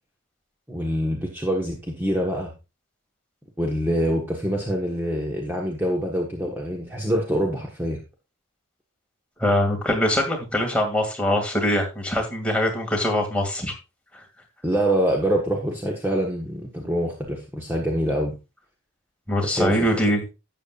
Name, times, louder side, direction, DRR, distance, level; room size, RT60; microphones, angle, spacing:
voice 1, 0.7-2.5 3.6-8.0 14.6-18.4 19.4-19.9, equal, 10° right, -1 dB, 1.3 m, -25 dB
voice 2, 9.4-13.7 19.3-20.2, left 1 dB, 5° left, 0 dB, 2.3 m, -23 dB
12.5 x 8.6 x 2.5 m, 0.27 s
head